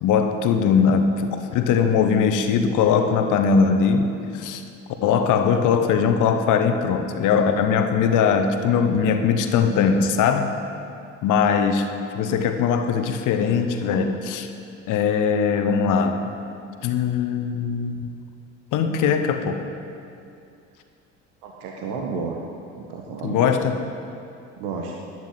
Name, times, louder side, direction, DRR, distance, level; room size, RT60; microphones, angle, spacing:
voice 1, 0.0-4.6 5.0-10.5 11.2-11.9 12.1-14.5 14.9-16.2 16.8-18.1 18.7-19.7 23.2-23.7, left 6 dB, 55° left, 7 dB, 1.3 m, -20 dB
voice 2, 21.4-22.4 22.7-23.6 24.6-24.9, right 5 dB, 65° right, 0 dB, 1.5 m, -31 dB
12.5 x 11.0 x 7.7 m, 2.6 s
figure-of-eight pair, 55°, 37 cm